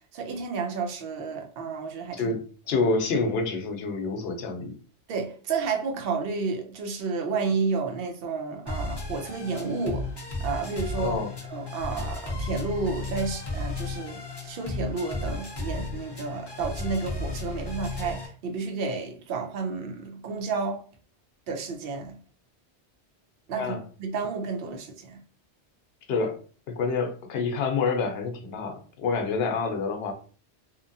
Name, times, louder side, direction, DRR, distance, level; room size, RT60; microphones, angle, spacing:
voice 1, 0.1-2.4 5.1-10.0 10.4-11.2 11.5-20.8 21.5-22.2 23.5-25.2, right 4 dB, 65° right, 0.8 m, -31 dB
voice 2, 2.7-4.7 10.9-11.3 23.5-23.8 26.1-26.4 26.7-30.1, left 4 dB, 70° left, 0.8 m, -27 dB
sound 1, 8.7-18.3, left 3 dB, 30° left, 0.5 m, -34 dB
2.8 x 2.2 x 2.6 m
omnidirectional pair, 1.1 m